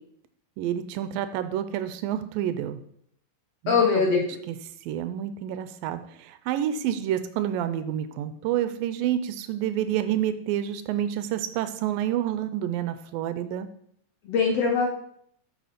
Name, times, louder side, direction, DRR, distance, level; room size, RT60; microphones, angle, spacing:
voice 1, 0.6-2.8 3.6-4.6 4.8-13.7, right 11 dB, 80° right, 11 dB, 2.3 m, -29 dB
voice 2, 3.7-4.4 14.3-14.9, left 5 dB, 65° left, 0 dB, 1.7 m, -22 dB
7.7 x 6.8 x 5.1 m, 0.68 s
omnidirectional pair, 4.1 m